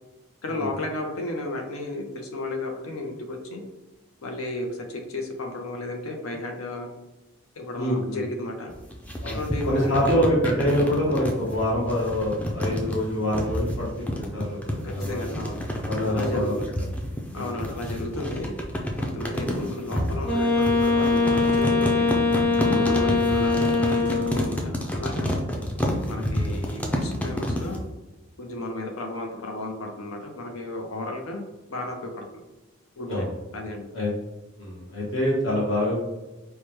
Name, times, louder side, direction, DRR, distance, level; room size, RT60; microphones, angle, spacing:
voice 1, 0.4-3.6 4.2-6.9 7.6-8.7 9.3-10.3 14.8-15.6 16.1-16.5 17.3-18.5 19.0-22.1 22.9-25.3 26.1-27.8 28.4-31.4 31.7-32.4 33.0-33.3 33.5-33.8, left 2 dB, 80° left, 3 dB, 0.6 m, -33 dB
voice 2, 7.8-8.2 9.2-9.4 9.7-15.3 15.9-16.5 17.3-17.5 22.6-22.9 33.1-33.2 33.9-34.1 34.6-36.0, equal, 60° left, -5 dB, 1.1 m, -25 dB
sound 1, 8.7-27.8, equal, 5° left, 0.3 m, -29 dB
Wind instrument woodwind instrument, 20.2-24.6, left 3 dB, 25° left, 1.4 m, -22 dB
4.7 x 2.1 x 3.1 m, 1.1 s
head